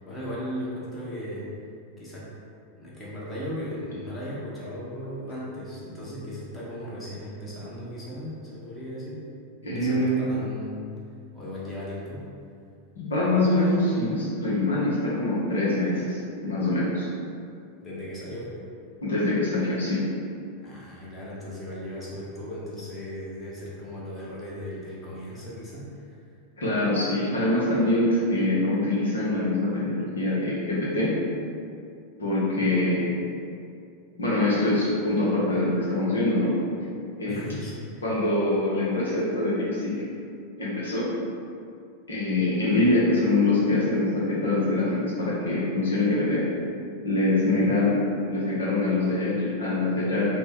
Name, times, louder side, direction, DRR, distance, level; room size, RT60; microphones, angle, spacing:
voice 1, 0.0-1.5 2.0-2.3 2.8-9.2 9.6-10.8 11.3-12.3 17.8-18.6 20.6-26.2 37.3-38.0 47.5-47.8, equal, 15° left, -8 dB, 1.0 m, -37 dB
voice 2, 9.6-10.3 13.0-17.1 19.0-20.0 26.6-31.1 32.2-33.1 34.2-36.5 37.2-37.3 38.0-40.0 40.6-41.1 42.1-46.4 47.0-48.0 48.3-50.4, left 2 dB, 70° left, -7 dB, 0.9 m, -24 dB
4.1 x 2.2 x 3.6 m, 2.4 s
figure-of-eight pair, 90°, 0 cm